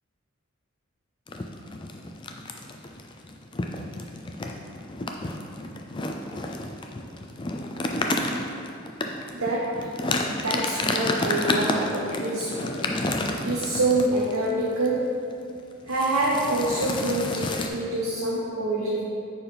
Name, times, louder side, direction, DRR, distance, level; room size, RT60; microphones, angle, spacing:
sound 1, 1.3-14.5 14.9-15.1 15.3-15.6 15.9-17.7, left 2 dB, 20° left, 0.3 m, -30 dB
voice 1, 9.3-9.9 10.3-12.8 13.4-15.2 15.9-19.0, right 2 dB, 75° right, -5 dB, 1.0 m, -26 dB
9.9 x 4.6 x 3.4 m, 2.4 s
head